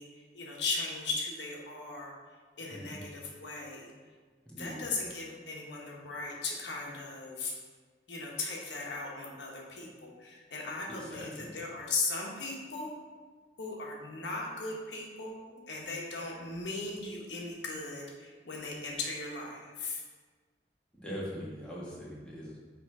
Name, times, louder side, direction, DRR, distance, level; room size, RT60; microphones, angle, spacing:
voice 1, 0.0-2.1 2.6-3.9 4.5-7.5 8.1-12.9 13.6-20.0, left 3 dB, 85° left, -2 dB, 1.1 m, -38 dB
voice 2, 4.5-4.8 11.1-11.5 21.0-22.6, equal, 5° left, -6 dB, 1.2 m, -41 dB
6.4 x 3.2 x 4.7 m, 1.5 s
head